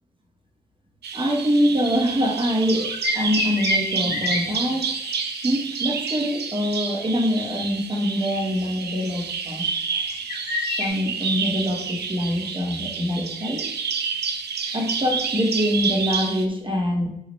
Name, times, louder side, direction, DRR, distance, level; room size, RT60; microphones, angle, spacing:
Bird vocalization bird call bird song, 1.0-16.5, right 6 dB, 60° right, 0.9 m, -29 dB
voice 1, 1.1-5.0 5.4-9.7 10.8-13.7 14.7-17.1, equal, 25° right, 1 dB, 2.4 m, -24 dB
sound 1, 2.8-5.5 9.7-10.9, left 2 dB, 75° left, 1.6 m, -28 dB
9.2 x 3.9 x 3.5 m, 0.81 s
hypercardioid pair, 40°, 19 cm